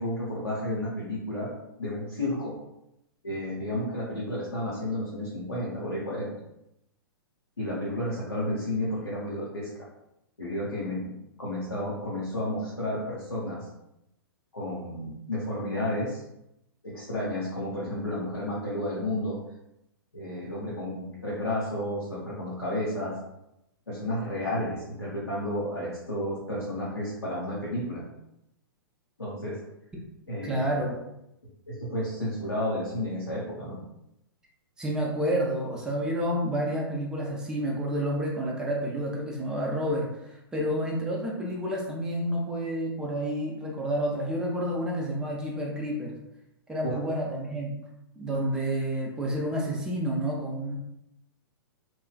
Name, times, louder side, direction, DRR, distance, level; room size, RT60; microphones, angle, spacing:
voice 1, 0.0-1.5 1.8-2.6 3.2-6.3 7.6-9.8 10.4-11.1 11.4-13.6 14.5-16.2 16.8-19.4 20.1-23.1 23.9-28.0 29.2-29.6 30.3-30.7 31.7-33.8 46.8-47.0, left 1 dB, 80° left, -7 dB, 0.8 m, -32 dB
voice 2, 30.4-31.0 34.8-46.2 46.7-47.8 48.2-50.8, equal, 5° right, -2 dB, 0.4 m, -29 dB
3.0 x 2.3 x 2.3 m, 0.85 s
figure-of-eight pair, 110°, 13 cm